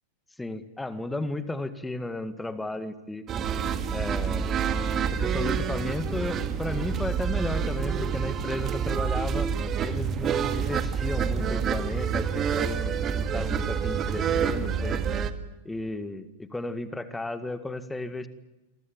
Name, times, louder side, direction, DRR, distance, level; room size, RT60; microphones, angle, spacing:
voice 1, 0.4-3.2 3.9-4.5 5.2-9.5 9.8-15.0 15.6-18.3, left 2 dB, 5° left, 11 dB, 1.9 m, -34 dB
sound 1, 3.3-15.3, right 7 dB, 25° right, 1.9 m, -28 dB
28.5 x 24.0 x 7.4 m, 1.0 s
figure-of-eight pair, 90°, 0 cm